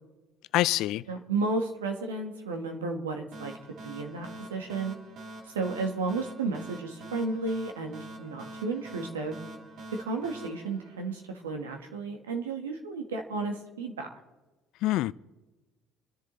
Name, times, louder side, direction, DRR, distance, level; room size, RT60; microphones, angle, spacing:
voice 1, 0.5-1.0 14.8-15.1, left 16 dB, 65° left, 0.4 m, -25 dB
voice 2, 1.1-4.9 5.5-9.3 10.0-14.1, right 3 dB, 90° right, 1.7 m, -33 dB
sound 1, 3.3-11.6, right 1 dB, 60° right, 2.3 m, -45 dB
27.5 x 10.5 x 4.0 m
hypercardioid pair, 60°, 0 cm